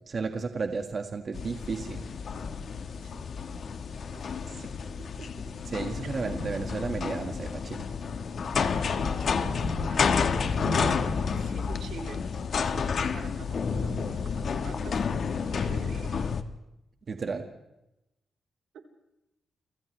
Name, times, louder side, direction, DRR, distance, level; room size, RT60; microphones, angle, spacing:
voice 1, 0.1-2.0 4.4-4.5 5.7-7.9 17.1-17.4, right 4 dB, 40° right, 4 dB, 1.7 m, -33 dB
sound 1, 1.3-16.4, left 5 dB, 50° left, 1.4 m, -30 dB
voice 2, 4.1-4.5 5.0-5.5 9.9-16.3, right 5 dB, 85° right, 2 dB, 3.8 m, -47 dB
29.5 x 26.0 x 3.3 m, 0.89 s
wide cardioid pair, 155°, 0 cm